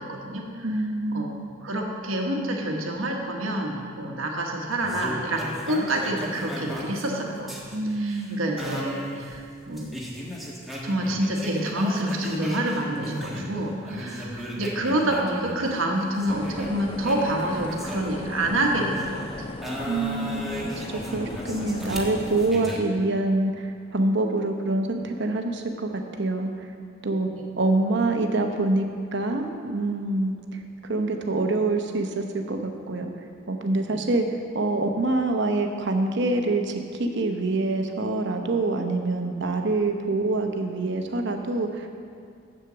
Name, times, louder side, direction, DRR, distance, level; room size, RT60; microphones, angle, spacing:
voice 1, 0.0-0.7 1.1-1.3 1.6-7.6 8.0-9.9 10.8-19.5 27.3-27.4, right 1 dB, 90° right, 0 dB, 1.4 m, -27 dB
voice 2, 0.6-1.5 7.7-8.5 19.8-26.7 27.0-27.3 27.6-34.3 34.5-41.9, right 2 dB, 60° right, 4 dB, 0.9 m, -26 dB
sound 1, 4.8-13.6 13.8-19.1 19.6-22.8, equal, ahead, 1.3 m, -36 dB
sound 2, 16.2-22.5, left 2 dB, 25° left, 0.3 m, -38 dB
7.8 x 7.5 x 6.9 m, 2.3 s
head